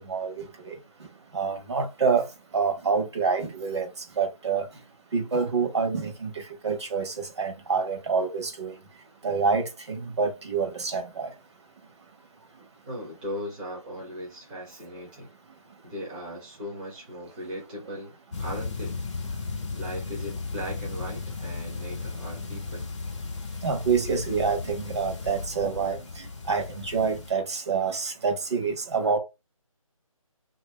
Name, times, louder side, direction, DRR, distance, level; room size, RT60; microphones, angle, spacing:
voice 1, 0.1-0.7 1.3-2.2 2.5-3.9 4.2-4.6 5.1-6.3 6.6-8.7 9.2-11.3 23.6-29.2, right 5 dB, 50° right, 1.1 m, -27 dB
voice 2, 12.9-15.3 15.8-19.0 19.7-22.9, equal, 10° right, 0.7 m, -38 dB
sound 1, 18.3-27.3, left 4 dB, 55° left, 0.8 m, -35 dB
3.0 x 2.8 x 3.1 m
figure-of-eight pair, 155°, 18 cm